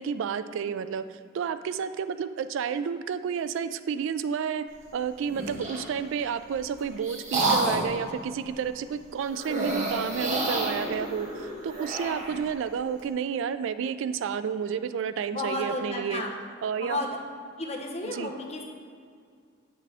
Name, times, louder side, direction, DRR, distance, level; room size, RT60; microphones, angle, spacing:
voice 1, 0.0-4.7 4.9-16.2 16.6-17.0 18.0-18.3, right 7 dB, 65° right, 12 dB, 0.3 m, -31 dB
sound 1, 5.3-5.9 6.5-8.0 9.4-12.4, right 2 dB, 35° right, 1.3 m, -29 dB
voice 2, 15.3-16.3 16.8-17.1 17.6-18.6, left 2 dB, 35° left, 1 dB, 0.9 m, -32 dB
8.4 x 5.9 x 3.4 m, 2.2 s
head